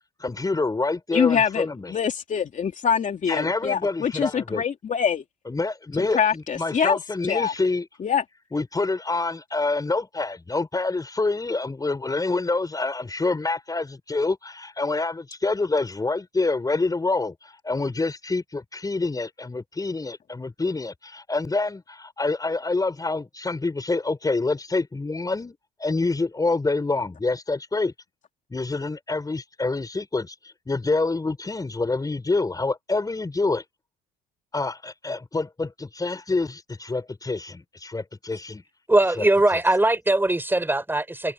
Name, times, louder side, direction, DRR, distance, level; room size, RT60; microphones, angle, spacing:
voice 1, 0.2-1.9 3.3-4.6 5.5-7.9 8.5-27.9 28.5-30.4 30.7-33.6 34.5-38.6 39.2-39.3, left 3 dB, 20° left, 5.3 m, -27 dB
voice 2, 1.1-5.2 6.0-7.0 7.2-7.5 8.0-8.2, left 7 dB, 40° left, 2.9 m, -24 dB
voice 3, 38.9-41.3, right 2 dB, 10° right, 7.3 m, -21 dB
supercardioid pair, 80°, 20 cm